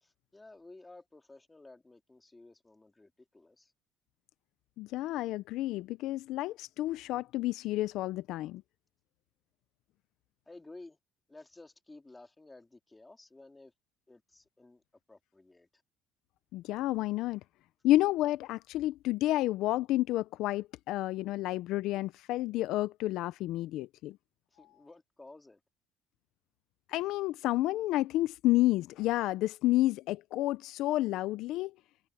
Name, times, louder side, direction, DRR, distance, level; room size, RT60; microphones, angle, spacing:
voice 1, 0.0-3.7 10.5-11.0 11.3-13.7 14.1-14.8 15.1-15.8 24.5-25.6, left 2 dB, 15° left, 2.8 m, -54 dB
voice 2, 4.8-8.6 16.5-17.4 17.8-24.2 26.9-31.7, left 16 dB, 75° left, 0.5 m, -30 dB
cardioid pair, 100°, 0 cm